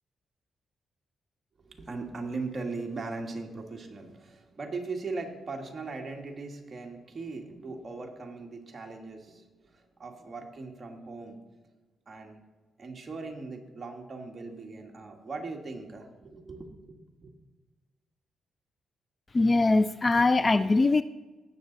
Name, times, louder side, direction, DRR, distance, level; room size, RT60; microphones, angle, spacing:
voice 1, 1.6-11.4 12.1-12.4 12.8-17.3, right 3 dB, 30° right, 1 dB, 1.8 m, -39 dB
voice 2, 19.3-21.0, left 3 dB, 25° left, 14 dB, 0.3 m, -22 dB
18.0 x 7.0 x 4.0 m, 1.2 s
cardioid pair, 110°, 0 cm